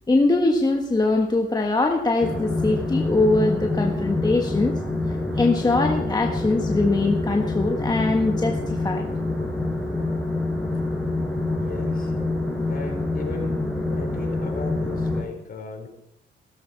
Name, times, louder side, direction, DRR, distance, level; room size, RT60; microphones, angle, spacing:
voice 1, 0.1-4.8 5.3-9.1, left 2 dB, 20° left, 3 dB, 1.5 m, -22 dB
sound 1, 2.2-15.2, left 2 dB, ahead, 5.3 m, -26 dB
voice 2, 11.6-12.1 12.7-13.6 13.9-15.9, left 4 dB, 50° left, 2 dB, 4.9 m, -36 dB
16.5 x 14.0 x 4.7 m, 0.81 s
cardioid pair, 90°, 20 cm